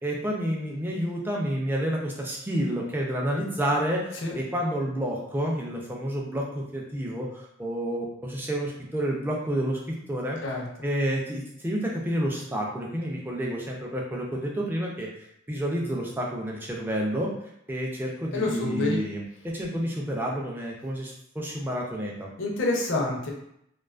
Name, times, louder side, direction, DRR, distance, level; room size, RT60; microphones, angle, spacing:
voice 1, 0.0-9.8 10.1-10.4 10.8-15.1 15.5-17.3 17.7-22.3, equal, 10° right, -2 dB, 0.3 m, -29 dB
voice 2, 18.3-19.0 22.4-23.3, left 2 dB, 60° left, -1 dB, 0.5 m, -27 dB
2.4 x 2.3 x 2.3 m, 0.76 s
head